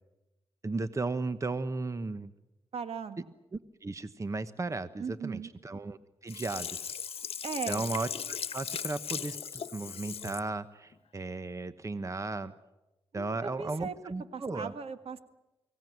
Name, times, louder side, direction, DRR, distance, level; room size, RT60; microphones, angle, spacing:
voice 1, 0.6-2.3 3.5-6.9 7.7-12.5 13.1-14.7, right 3 dB, 30° right, 12 dB, 1.1 m, -35 dB
voice 2, 2.7-3.3 5.0-5.5 7.4-7.9 13.1-13.9 14.3-15.2, right 6 dB, 75° right, 10 dB, 1.7 m, -38 dB
Sink (filling or washing), 6.3-10.5 10.9-11.0, left 7 dB, 70° left, 1.1 m, -38 dB
24.0 x 17.5 x 9.4 m, 0.99 s
cardioid pair, 75°, 10 cm